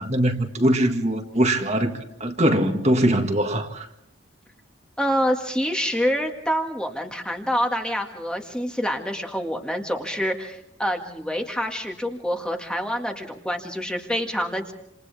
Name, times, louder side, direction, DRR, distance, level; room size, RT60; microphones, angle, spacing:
voice 1, 0.0-3.9, right 1 dB, 35° right, 1.8 m, -22 dB
voice 2, 5.0-14.7, equal, 5° left, 1.9 m, -26 dB
28.5 x 28.0 x 3.5 m
head